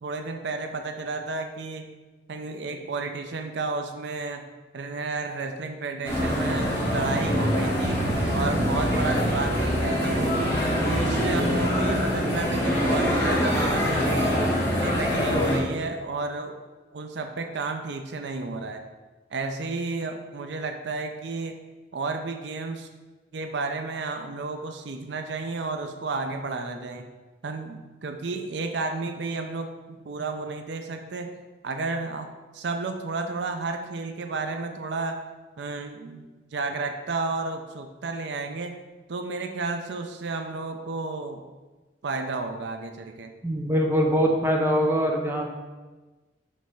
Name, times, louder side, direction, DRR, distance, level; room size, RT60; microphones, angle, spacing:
voice 1, 0.0-1.9 2.3-4.4 4.7-8.0 8.3-10.4 10.8-14.4 14.7-16.6 16.9-18.8 19.3-21.6 21.9-22.9 23.3-27.0 27.4-31.3 31.6-35.2 35.6-36.2 36.5-38.8 39.1-41.4 42.0-43.3, right 3 dB, 70° right, 6 dB, 0.5 m, -32 dB
sound 1, 6.0-15.6, equal, 15° left, 1.5 m, -24 dB
voice 2, 43.4-45.5, equal, 10° right, 1 dB, 0.7 m, -23 dB
5.2 x 3.4 x 5.7 m, 1.2 s
head